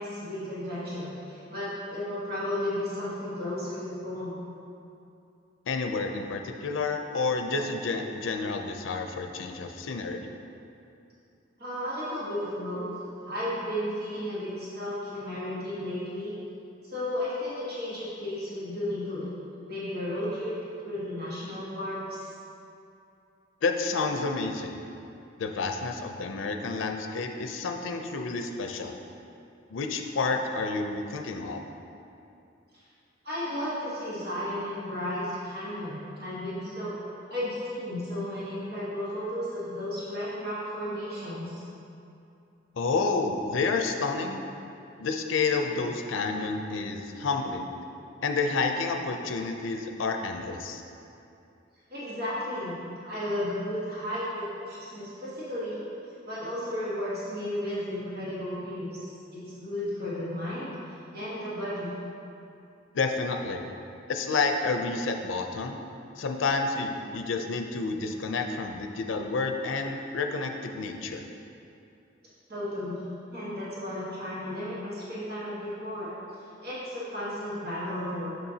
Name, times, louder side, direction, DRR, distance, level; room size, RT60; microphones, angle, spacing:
voice 1, 0.0-4.4 11.6-12.9 13.3-16.3 16.8-19.3 19.6-20.6 20.8-22.2 33.2-36.9 37.3-41.6 51.9-55.8 56.2-60.7 61.1-61.9 72.5-76.1 76.6-78.3, left 1 dB, 55° right, -10 dB, 1.5 m, -34 dB
voice 2, 5.7-10.3 23.6-24.8 25.4-29.0 29.7-31.6 42.7-44.4 45.0-47.7 48.2-50.8 62.9-63.6 64.1-65.8 66.2-71.3, left 4 dB, 90° left, 4 dB, 0.5 m, -29 dB
6.8 x 6.4 x 2.8 m, 2.6 s
head